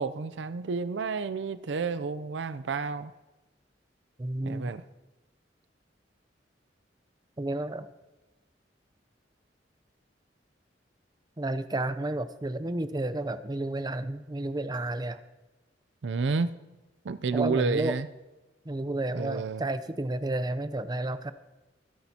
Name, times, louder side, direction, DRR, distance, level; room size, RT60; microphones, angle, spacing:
voice 1, 0.0-3.1 4.4-4.8 16.0-16.5 17.0-18.1 19.1-19.6, right 4 dB, 75° right, 14 dB, 0.5 m, -30 dB
voice 2, 4.2-4.7 7.4-7.9 11.4-15.2 17.3-17.9 18.7-21.3, right 2 dB, 20° right, 12 dB, 0.6 m, -31 dB
21.0 x 10.5 x 2.8 m, 1.1 s
head